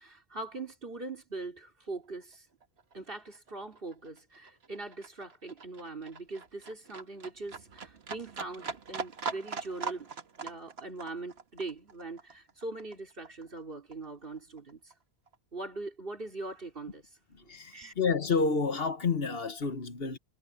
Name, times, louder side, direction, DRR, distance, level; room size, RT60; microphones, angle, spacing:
voice 1, 0.0-2.4 2.9-10.1 10.4-14.9 15.5-17.0 17.4-17.9, right 3 dB, 60° right, 3.4 m, -41 dB
Livestock farm animals working animals, 2.2-2.3 2.6-13.6 13.9-14.9 15.3-15.4, right 4 dB, 75° right, 1.7 m, -42 dB
voice 2, 17.5-20.2, left 4 dB, 65° left, 1.5 m, -29 dB
omnidirectional pair, 1.1 m